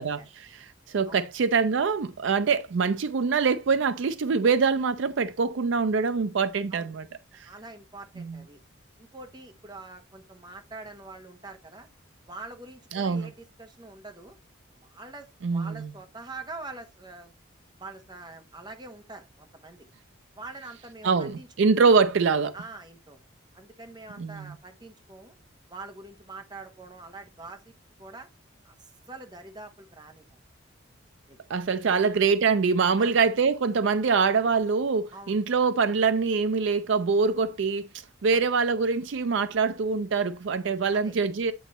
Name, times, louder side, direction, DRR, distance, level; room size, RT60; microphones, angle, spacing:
voice 1, 0.0-7.1 7.3-7.5 8.2-8.4 12.9-13.3 15.4-15.9 21.0-22.6 24.2-24.5 31.5-41.5, right 5 dB, 65° right, 0.4 m, -24 dB
voice 2, 7.3-8.6 9.0-11.9 12.3-14.3 14.8-17.3 17.8-19.9 20.3-21.5 22.5-23.2 23.5-25.4 25.7-27.7 28.0-28.3 28.6-30.4 31.3-31.4 31.9-32.0 33.0-33.2 35.1-35.4 38.3-38.5 40.9-41.2, right 3 dB, 20° right, 1.0 m, -44 dB
8.5 x 4.0 x 4.1 m
head